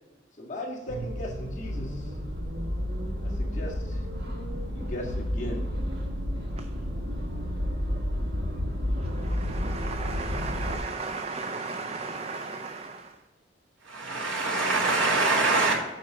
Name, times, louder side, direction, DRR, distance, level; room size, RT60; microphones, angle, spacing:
voice 1, 0.4-2.1 3.2-4.0 4.7-5.7, left 1 dB, 40° left, -2 dB, 1.6 m, -37 dB
sound 1, 0.9-10.8, equal, 55° right, 1.5 m, -31 dB
voice 2, 9.1-13.2, right 4 dB, 30° right, 6 dB, 0.4 m, -35 dB
voice 3, 13.9-15.7, right 3 dB, 90° right, -2 dB, 2.3 m, -24 dB
9.3 x 4.0 x 6.4 m, 1.2 s
head